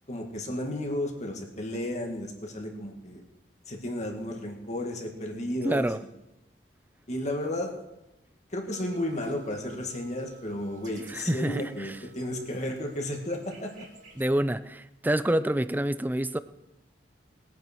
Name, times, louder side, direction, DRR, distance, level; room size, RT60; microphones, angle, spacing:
voice 1, 0.1-3.2 3.7-5.9 7.1-7.7 8.5-13.9, left 1 dB, 40° left, 2 dB, 2.2 m, -33 dB
voice 2, 5.6-6.0 11.1-11.9 14.2-16.4, right 1 dB, 10° right, 14 dB, 0.5 m, -27 dB
sound 1, 8.7-14.2, equal, 45° right, 2.6 m, -52 dB
20.5 x 9.5 x 4.6 m, 0.97 s
head